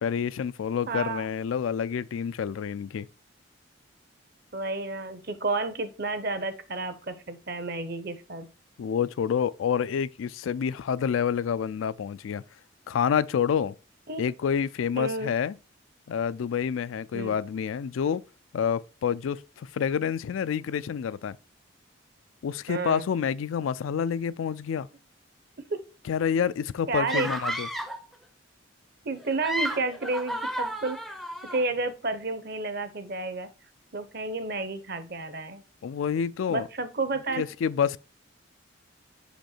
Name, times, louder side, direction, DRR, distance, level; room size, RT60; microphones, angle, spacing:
voice 1, 0.0-3.1 8.8-12.4 12.9-13.7 14.2-15.6 16.1-18.2 18.5-21.4 22.4-24.9 26.1-27.7 35.8-36.7 37.4-38.0, left 7 dB, 80° left, 0.3 m, -28 dB
voice 2, 0.9-1.3 4.5-8.5 14.1-14.2 15.0-15.3 17.1-17.4 22.7-23.1 25.7-25.8 26.9-27.3 29.0-31.2 31.5-33.5 33.9-35.6 36.5-37.5, right 3 dB, 50° right, 0.8 m, -31 dB
sound 1, 27.1-28.0 29.2-31.6, right 1 dB, ahead, 0.5 m, -32 dB
5.6 x 5.2 x 4.3 m
head